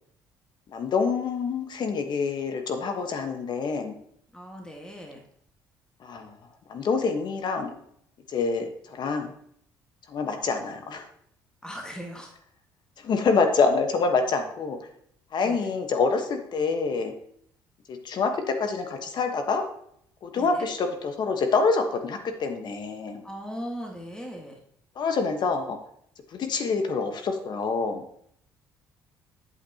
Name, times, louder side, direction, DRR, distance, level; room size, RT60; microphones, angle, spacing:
voice 1, 0.7-4.0 6.0-6.3 6.7-7.7 8.3-8.7 9.0-9.3 10.1-11.1 13.0-14.8 15.3-17.1 17.9-19.6 20.2-23.2 25.0-25.8 26.3-28.0, left 4 dB, 55° left, 6 dB, 1.3 m, -26 dB
voice 2, 4.3-5.2 11.6-12.3 15.4-15.6 20.3-20.7 23.2-24.5, equal, 10° left, 0 dB, 1.8 m, -38 dB
8.3 x 7.9 x 2.9 m, 0.67 s
supercardioid pair, 70°, 9 cm